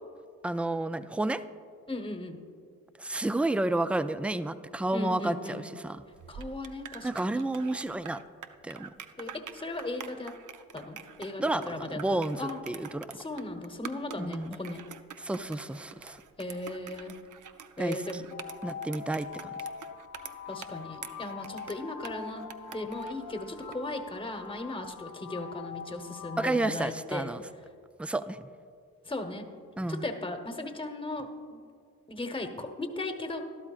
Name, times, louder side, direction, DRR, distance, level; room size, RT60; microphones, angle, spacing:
voice 1, 0.4-1.4 3.0-6.1 7.0-8.2 8.6-8.9 11.4-13.1 14.2-14.6 15.2-16.2 17.8-18.2 18.6-19.5 26.4-27.5 28.0-28.4 29.8-30.1, right 2 dB, 5° right, 13 dB, 0.3 m, -31 dB
voice 2, 1.9-2.4 4.9-5.6 6.3-7.4 9.2-10.3 10.7-12.6 13.2-14.8 16.4-17.2 17.8-18.3 20.5-27.4 29.0-29.5 29.9-31.6 32.1-33.4, left 2 dB, 15° left, 6 dB, 1.1 m, -37 dB
sound 1, 6.1-23.9, right 8 dB, 55° right, 0.6 m, -46 dB
sound 2, 18.3-26.7, left 6 dB, 75° left, 0.7 m, -43 dB
12.5 x 12.0 x 2.5 m, 2.3 s
supercardioid pair, 45°, 37 cm